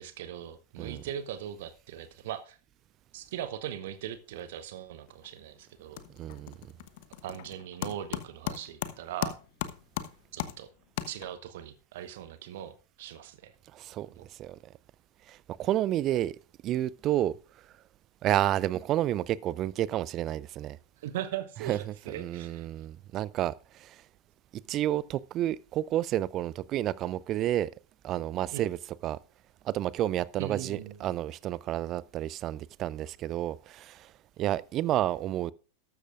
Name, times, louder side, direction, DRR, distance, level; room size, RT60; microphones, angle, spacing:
voice 1, 0.0-2.6 3.1-6.0 7.2-9.4 10.3-10.7 11.1-13.5 14.2-14.3 21.0-22.7 28.5-28.7 30.4-31.1, right 11 dB, 55° right, 0.8 m, -40 dB
sound 1, 5.1-5.5 5.7-11.6, left 13 dB, 50° left, 0.9 m, -38 dB
voice 2, 6.2-6.5 13.7-14.6 15.3-16.4 16.6-17.4 18.2-20.8 21.7-21.8 22.1-24.0 24.7-27.7 28.0-28.8 29.0-29.2 29.6-34.1 34.4-35.5, right 13 dB, 35° right, 0.5 m, -30 dB
13.0 x 13.0 x 2.5 m
figure-of-eight pair, 90°, 0 cm